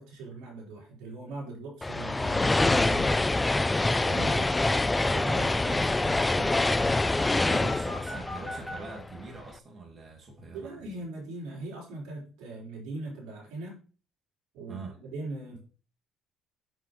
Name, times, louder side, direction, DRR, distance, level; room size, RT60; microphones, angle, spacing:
voice 1, 0.0-3.3 4.0-7.7 10.5-13.8 14.5-15.6, right 2 dB, 85° right, -3 dB, 4.0 m, -41 dB
sound 1, 1.8-9.2, left 2 dB, 15° left, 0.4 m, -26 dB
voice 2, 4.1-4.5 7.5-11.0 14.7-15.0, right 3 dB, 40° right, 1 dB, 2.2 m, -43 dB
sound 2, 7.5-8.8, left 1 dB, ahead, 3.4 m, -44 dB
7.9 x 7.4 x 3.0 m, 0.37 s
cardioid pair, 100°, 0 cm